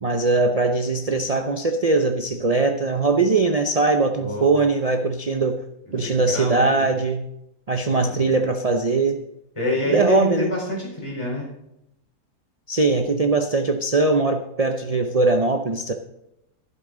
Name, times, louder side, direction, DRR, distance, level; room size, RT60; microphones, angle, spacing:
voice 1, 0.0-5.6 5.9-7.3 7.7-9.2 9.8-10.5 12.7-15.9, right 3 dB, 45° right, 5 dB, 0.5 m, -21 dB
voice 2, 4.2-4.5 5.9-6.9 7.9-8.2 9.6-11.5, left 2 dB, 15° left, -3 dB, 4.3 m, -27 dB
12.0 x 12.0 x 3.9 m, 0.84 s
omnidirectional pair, 1.8 m